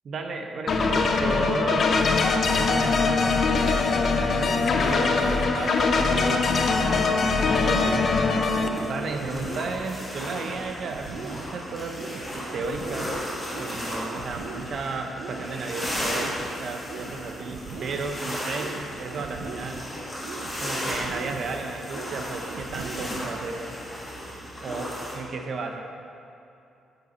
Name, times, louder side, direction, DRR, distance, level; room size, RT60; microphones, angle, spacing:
voice 1, 0.0-2.0 2.5-6.5 7.4-8.1 8.8-12.0 12.3-13.2 13.5-19.9 20.6-23.8 24.6-25.8, right 3 dB, 45° right, 4 dB, 0.8 m, -34 dB
sound 1, 0.7-8.7, left 4 dB, 40° left, 0.6 m, -22 dB
sound 2, 3.5-23.5, right 4 dB, 85° right, 0.8 m, -41 dB
sound 3, 8.7-25.2, equal, 10° left, 1.7 m, -35 dB
9.2 x 6.8 x 4.3 m, 2.7 s
cardioid pair, 160°, 0 cm